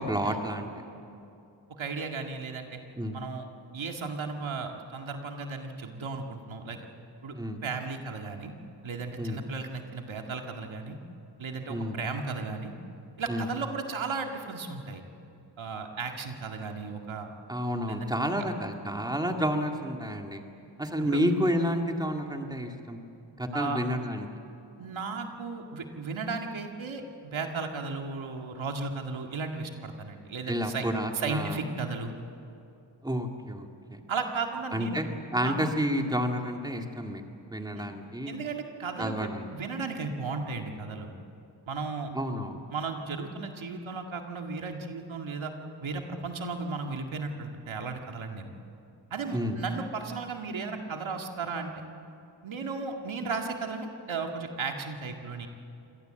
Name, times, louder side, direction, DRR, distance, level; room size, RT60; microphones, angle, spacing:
voice 1, 0.1-0.8 3.0-3.2 7.3-7.6 9.2-9.4 11.7-12.0 13.3-13.5 17.5-20.4 20.8-23.0 23.4-24.3 30.5-31.6 33.0-34.0 34.7-37.2 37.5-38.3 39.0-39.5 42.1-42.6 49.3-49.6, equal, 10° right, 3 dB, 2.2 m, -30 dB
voice 2, 1.8-2.8 3.1-3.5 3.7-6.8 7.2-7.3 7.6-8.5 8.8-11.0 11.4-12.7 13.2-15.0 15.6-17.3 17.9-18.2 21.0-21.2 23.5-23.8 24.8-30.9 31.1-32.1 34.1-35.0 35.3-35.5 37.7-37.8 38.3-41.1 41.7-42.1 42.7-45.5 45.8-48.5 49.1-51.7 52.4-55.5, right 4 dB, 75° right, 3 dB, 2.1 m, -35 dB
25.5 x 18.5 x 7.8 m, 2.7 s
cardioid pair, 75°, 47 cm